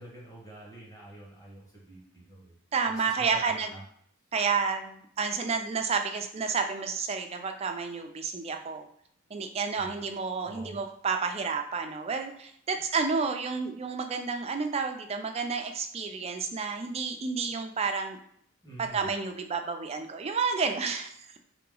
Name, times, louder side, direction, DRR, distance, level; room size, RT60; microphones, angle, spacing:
voice 1, 0.0-2.5 3.2-3.8 9.8-10.0 10.4-10.8 18.6-19.0, right 1 dB, 15° left, -5 dB, 1.3 m, -46 dB
voice 2, 2.7-3.7 4.3-8.9 9.3-18.2 18.8-21.4, right 5 dB, 30° right, 5 dB, 0.3 m, -30 dB
3.7 x 2.9 x 3.8 m, 0.67 s
head